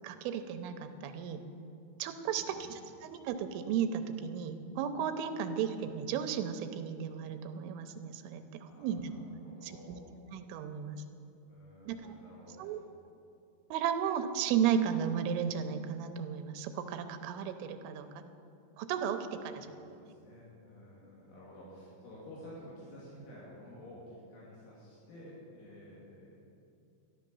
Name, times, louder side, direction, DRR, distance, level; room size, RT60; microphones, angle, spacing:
voice 1, 0.0-1.5 2.0-9.1 9.6-10.0 10.3-11.0 11.9-12.1 12.6-12.8 13.7-18.2 18.8-20.0, right 8 dB, 90° right, 8 dB, 3.3 m, -34 dB
voice 2, 2.2-2.9 8.7-10.0 11.5-12.8 19.6-26.4, equal, 80° left, -7 dB, 5.2 m, -52 dB
13.5 x 11.0 x 6.9 m, 2.6 s
omnidirectional pair, 5.5 m